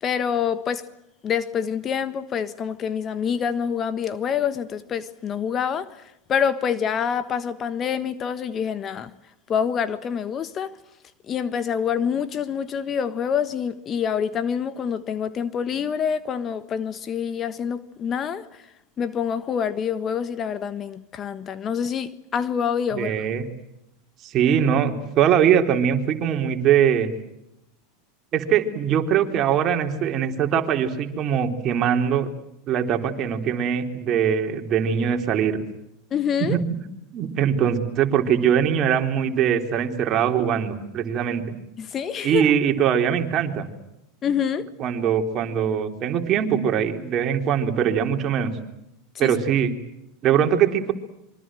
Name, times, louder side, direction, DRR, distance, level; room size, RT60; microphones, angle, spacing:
voice 1, 0.0-0.9 1.2-6.0 6.3-9.1 9.5-10.8 11.3-18.6 19.0-23.1 36.1-36.6 41.8-42.5 44.2-44.7 49.2-49.3, left 7 dB, 35° left, 1.4 m, -26 dB
voice 2, 22.9-23.4 24.2-27.1 28.3-32.3 32.7-35.6 36.5-36.8 37.1-41.4 42.2-43.7 44.8-48.5 49.2-49.8 50.2-50.9, right 8 dB, 40° right, 3.7 m, -22 dB
26.5 x 24.0 x 7.7 m
hypercardioid pair, 105°, 0 cm